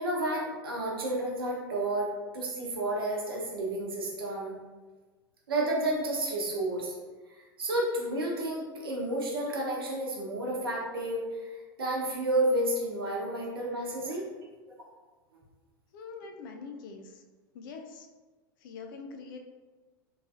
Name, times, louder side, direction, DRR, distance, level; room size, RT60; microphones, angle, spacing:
voice 1, 0.0-4.5 5.5-7.0 7.4-14.3, right 1 dB, 80° right, -2 dB, 0.7 m, -31 dB
voice 2, 15.9-17.2 17.5-18.1 18.6-19.4, left 4 dB, 65° left, 4 dB, 0.4 m, -44 dB
3.1 x 2.6 x 2.4 m, 1.3 s
hypercardioid pair, 85°, 12 cm